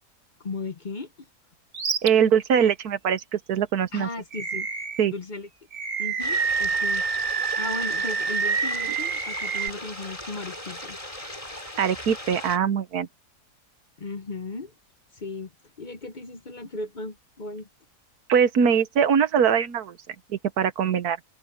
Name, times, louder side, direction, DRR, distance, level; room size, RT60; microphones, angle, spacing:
voice 1, 0.4-1.3 3.9-4.7 5.1-5.5 6.0-11.0 14.0-14.7 15.1-15.5 15.8-17.7, left 3 dB, 40° left, 0.8 m, -36 dB
Animal, 1.7-2.1 2.6-2.7 4.3-5.1 5.7-9.7, right 5 dB, 55° right, 1.8 m, -27 dB
voice 2, 2.0-4.1 5.0-5.1 11.8-13.1 18.3-21.3, right 7 dB, 75° right, 1.5 m, -22 dB
sound 1, 6.2-12.6, left 1 dB, 20° left, 4.1 m, -38 dB
omnidirectional pair, 1.7 m